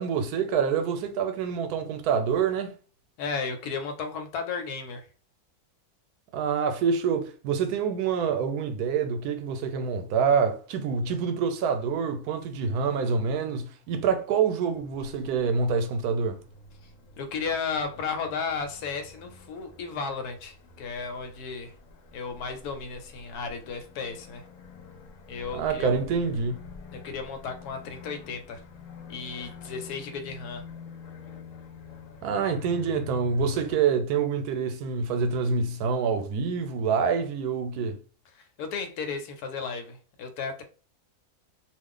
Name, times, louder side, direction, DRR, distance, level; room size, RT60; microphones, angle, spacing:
voice 1, 0.0-2.7 6.3-16.4 25.5-26.6 32.2-38.0, right 6 dB, 85° right, 1.1 m, -26 dB
voice 2, 3.2-5.1 17.2-21.7 22.1-24.5 25.3-26.0 26.9-28.6 29.1-30.7 38.3-40.6, left 5 dB, 85° left, 1.2 m, -34 dB
sound 1, 14.7-33.8, left 4 dB, 65° left, 0.9 m, -47 dB
2.4 x 2.4 x 3.6 m
omnidirectional pair, 1.6 m